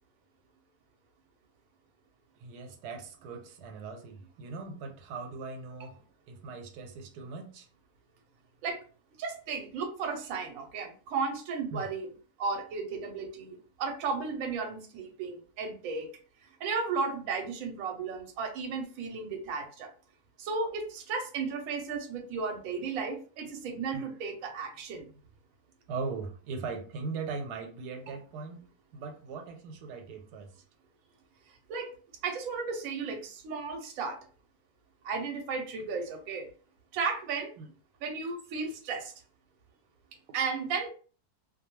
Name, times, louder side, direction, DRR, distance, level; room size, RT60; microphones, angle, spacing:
voice 1, 2.4-6.0 6.3-7.7 11.7-11.8 23.9-24.0 25.9-28.6 28.9-30.6 37.6-37.7, right 4 dB, 90° right, 1.2 m, -39 dB
voice 2, 9.2-12.1 12.4-16.1 16.6-19.9 20.4-25.1 28.1-28.2 31.7-31.9 32.2-34.2 35.0-36.5 36.9-37.5 38.0-39.1 40.3-40.9, right 4 dB, 70° right, 1.0 m, -34 dB
2.6 x 2.2 x 2.9 m
omnidirectional pair, 1.7 m